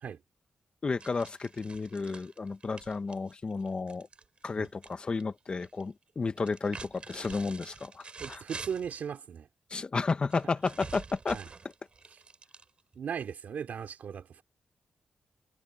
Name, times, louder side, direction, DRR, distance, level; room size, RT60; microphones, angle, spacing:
voice 1, 0.8-4.1 4.4-8.4 9.7-11.4, left 4 dB, 35° left, 1.1 m, -32 dB
sound 1, 1.0-4.9 5.2-5.8 6.4-9.1 10.3-13.0, right 4 dB, 40° right, 3.3 m, -47 dB
voice 2, 8.2-9.5 11.3-11.5 12.9-14.4, right 7 dB, 75° right, 2.7 m, -37 dB
wide cardioid pair, 115°, 3 cm